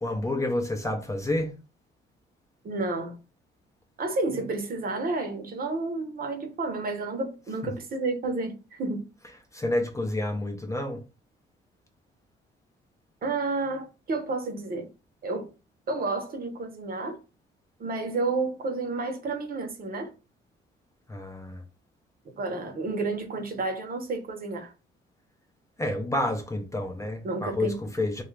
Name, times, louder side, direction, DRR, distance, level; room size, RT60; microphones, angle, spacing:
voice 1, 0.0-1.5 7.6-7.7 9.5-11.0 21.1-21.6 25.8-28.2, left 1 dB, 15° left, 0.6 m, -29 dB
voice 2, 2.6-3.2 4.0-9.0 13.2-14.9 15.2-15.5 15.9-17.2 17.8-20.1 22.4-24.7 27.2-27.7, right 3 dB, 50° right, 0.8 m, -30 dB
2.8 x 2.4 x 3.2 m
cardioid pair, 90°, 20 cm